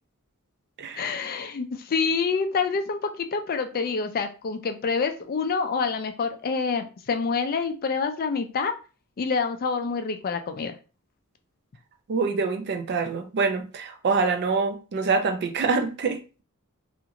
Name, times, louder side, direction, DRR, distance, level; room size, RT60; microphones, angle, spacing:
voice 1, 1.0-8.7 9.2-10.8, left 5 dB, 40° left, 0.4 m, -27 dB
voice 2, 12.1-16.4, right 4 dB, 50° right, 0.4 m, -25 dB
2.5 x 2.5 x 2.8 m
head